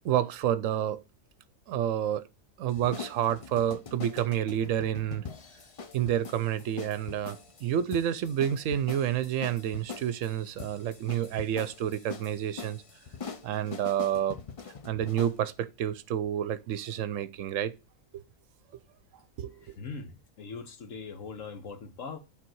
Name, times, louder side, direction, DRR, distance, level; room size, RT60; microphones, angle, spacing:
voice 1, 0.0-1.0 1.7-2.2 2.6-5.2 5.9-12.8 13.4-14.4 14.8-17.7 18.1-18.2 19.4-19.6, right 10 dB, 70° right, 1.0 m, -29 dB
sound 1, 2.7-15.4, left 5 dB, 50° left, 0.4 m, -43 dB
voice 2, 19.6-22.2, left 4 dB, 70° left, 1.5 m, -41 dB
8.9 x 3.9 x 4.5 m
omnidirectional pair, 1.4 m